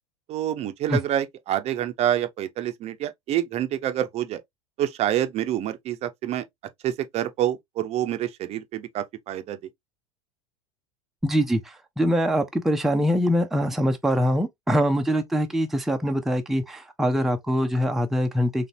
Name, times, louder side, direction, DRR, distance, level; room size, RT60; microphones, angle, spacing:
voice 1, 0.3-4.4 4.8-6.4 6.8-9.6, right 11 dB, 35° right, 0.7 m, -27 dB
voice 2, 11.2-18.7, equal, ahead, 0.6 m, -23 dB
3.9 x 3.2 x 2.8 m
figure-of-eight pair, 80°, 18 cm